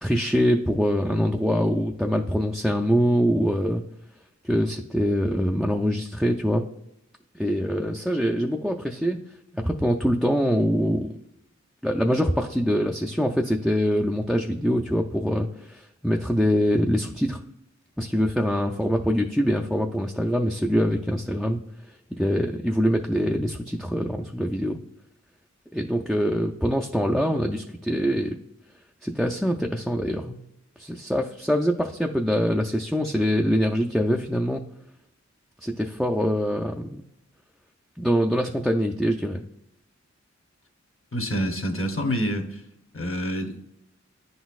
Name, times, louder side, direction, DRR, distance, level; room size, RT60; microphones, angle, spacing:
voice 1, 0.0-3.8 4.4-6.6 7.3-9.2 9.5-11.1 11.8-17.4 18.0-21.6 22.2-24.8 25.7-28.4 29.0-30.4 30.8-34.6 35.6-37.1 38.0-39.4, equal, ahead, 1 dB, 0.3 m, -24 dB
voice 2, 41.1-42.6 42.9-43.6, equal, 50° left, 4 dB, 0.9 m, -27 dB
9.9 x 4.0 x 2.4 m, 0.80 s
wide cardioid pair, 55°, 29 cm